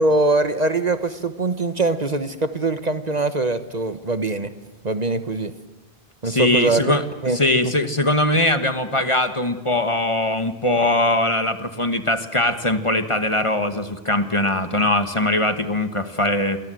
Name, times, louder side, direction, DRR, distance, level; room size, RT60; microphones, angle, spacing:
voice 1, 0.0-4.5 4.8-5.5 6.2-6.8 7.2-7.8, right 2 dB, 40° right, 1.2 m, -22 dB
voice 2, 6.2-7.0 7.3-16.6, left 1 dB, 30° left, 1.5 m, -21 dB
28.5 x 24.0 x 7.8 m
omnidirectional pair, 1.1 m